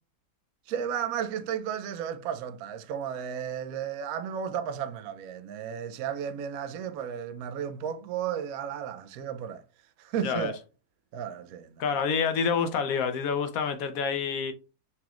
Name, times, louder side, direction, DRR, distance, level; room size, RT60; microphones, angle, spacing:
voice 1, 0.7-9.6 10.0-10.6 11.1-11.8, right 8 dB, 70° right, 1.0 m, -33 dB
voice 2, 10.2-10.5 11.8-14.5, left 6 dB, 70° left, 1.0 m, -27 dB
5.8 x 3.0 x 2.4 m
omnidirectional pair, 1.7 m